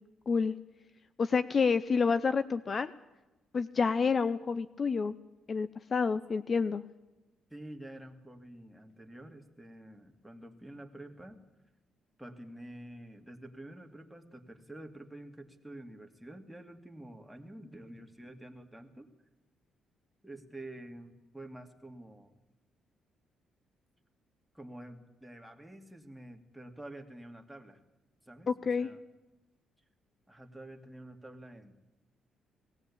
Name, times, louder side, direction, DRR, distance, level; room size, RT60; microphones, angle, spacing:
voice 1, 1.2-2.9 3.5-5.1 5.5-6.8 28.5-28.9, left 5 dB, 40° left, 14 dB, 0.6 m, -28 dB
voice 2, 7.5-11.4 12.2-19.1 20.2-22.3 24.5-27.8 28.2-28.5 28.8-29.0 30.3-31.7, right 1 dB, 5° right, 3 dB, 2.3 m, -48 dB
19.0 x 16.0 x 8.6 m, 1.1 s
cardioid pair, 90°, 0 cm